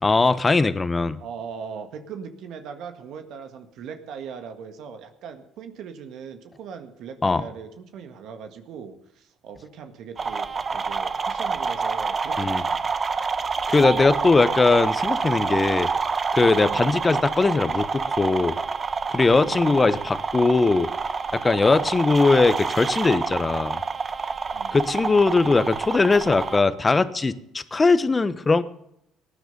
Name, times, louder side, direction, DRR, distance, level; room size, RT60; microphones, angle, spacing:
voice 1, 0.0-1.2 7.2-7.4 12.4-12.6 13.7-15.9 16.3-18.6 19.1-20.9 21.3-23.8 24.7-28.6, left 3 dB, 25° left, 13 dB, 1.1 m, -20 dB
voice 2, 1.2-12.9 16.6-16.8 19.4-19.6 21.8-22.1 24.5-24.9, right 6 dB, 70° right, 6 dB, 1.7 m, -40 dB
sound 1, 10.2-26.6, right 5 dB, 35° right, 1.1 m, -27 dB
19.0 x 10.0 x 5.4 m, 0.78 s
supercardioid pair, 80°, 0 cm